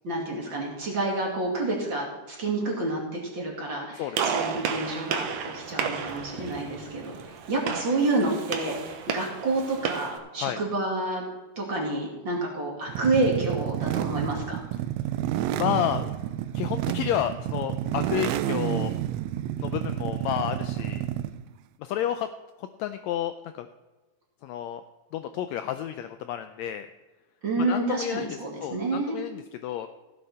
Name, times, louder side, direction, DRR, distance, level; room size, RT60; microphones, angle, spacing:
voice 1, 0.0-11.2 11.6-14.6 27.4-29.2, right 2 dB, 40° right, -2 dB, 2.9 m, -29 dB
Gunshot gunfire, 4.1-10.2, right 6 dB, 65° right, 2.1 m, -32 dB
sound 1, 12.9-21.4, right 12 dB, 85° right, 1.5 m, -30 dB
voice 2, 15.5-16.1 16.5-18.9 19.6-21.0 21.8-22.3 22.6-23.7 24.4-24.8 25.1-26.9 27.6-29.9, left 11 dB, 85° left, 9 dB, 1.6 m, -31 dB
15.0 x 8.5 x 4.3 m, 1.2 s
omnidirectional pair, 3.7 m